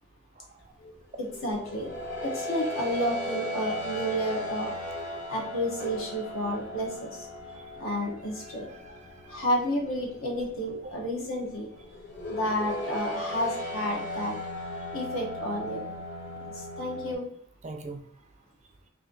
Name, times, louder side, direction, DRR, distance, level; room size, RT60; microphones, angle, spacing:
voice 1, 0.4-0.7 4.8-4.9 7.5-7.7 8.4-9.4 10.8-10.9 17.6-18.0, right 3 dB, 35° right, 5 dB, 0.5 m, -44 dB
sound 1, 0.7-17.1, left 1 dB, 40° left, 1.1 m, -37 dB
voice 2, 1.2-1.9 2.2-4.7 5.3-7.1 7.8-8.7 9.3-11.7 12.3-14.3 14.9-15.8 16.5-17.3, equal, 70° left, 0 dB, 1.2 m, -31 dB
3.2 x 2.7 x 3.8 m, 0.66 s
head